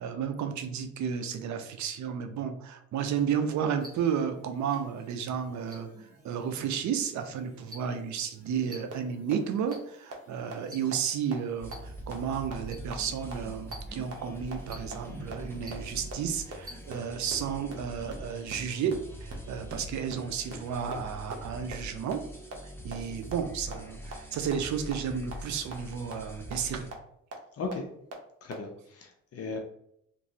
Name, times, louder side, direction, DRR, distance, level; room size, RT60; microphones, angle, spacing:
voice 1, 0.0-5.9 6.2-22.2 22.8-26.8, right 7 dB, 70° right, 8 dB, 0.5 m, -32 dB
sound 1, 3.8-17.0, equal, 30° right, 1.2 m, -52 dB
sound 2, 8.9-9.0 9.3-9.4 9.7-9.8 10.1-10.2 10.5-10.6 10.9-11.0 11.3-11.4 11.7-11.8 12.1-12.2 12.5-12.6 12.9-13.0 13.3-13.4 13.7-13.8 14.1-14.2 14.5-14.6 14.9-15.0 15.3-15.4 15.7-15.8 16.1-16.2 16.5-16.6 16.9-17.0 17.3-17.4 17.7-17.8 18.1-18.2 18.5-18.6 18.9-19.0 19.3-19.4 19.7-19.8 20.1-20.2 20.5-20.6 20.9-21.0 21.3-21.4 21.7-21.8 22.1-22.2 22.5-22.6 22.9-23.0 23.3-23.4 23.7-23.8 24.1-24.2 24.5-24.6 24.9-25.0 25.3-25.4 25.7-25.8 26.1-26.2 26.5-26.6 26.9-27.0 27.3-27.4 27.7-27.8 28.1-28.2 28.5-28.6, right 3 dB, 55° right, 0.9 m, -39 dB
sound 3, 11.6-26.9, equal, 10° left, 0.7 m, -44 dB
voice 2, 27.6-27.9 28.4-29.6, left 3 dB, 55° left, 3 dB, 0.6 m, -36 dB
3.0 x 2.6 x 2.7 m, 0.72 s
cardioid pair, 90°, 30 cm